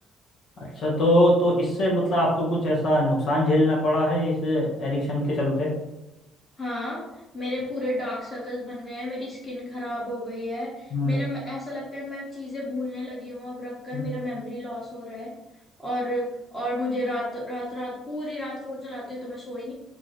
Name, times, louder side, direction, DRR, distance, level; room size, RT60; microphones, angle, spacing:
voice 1, 0.6-5.7 10.9-11.2 13.9-14.0, left 1 dB, 50° left, -3 dB, 1.3 m, -22 dB
voice 2, 6.6-15.4 15.8-19.7, left 1 dB, 10° left, -6 dB, 1.3 m, -32 dB
5.1 x 2.1 x 3.2 m, 0.94 s
cardioid pair, 115°, 0 cm